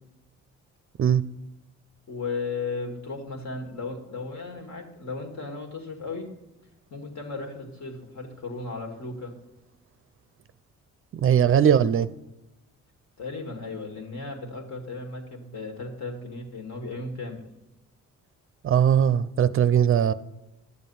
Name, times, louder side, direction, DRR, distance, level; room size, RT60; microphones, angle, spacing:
voice 1, 2.1-6.3 6.9-9.3 11.5-11.8 13.2-17.5, left 3 dB, 65° left, 2.2 m, -35 dB
voice 2, 11.1-12.1 18.6-20.1, right 9 dB, 45° right, 0.5 m, -20 dB
11.0 x 7.5 x 5.6 m
cardioid pair, 90°, 30 cm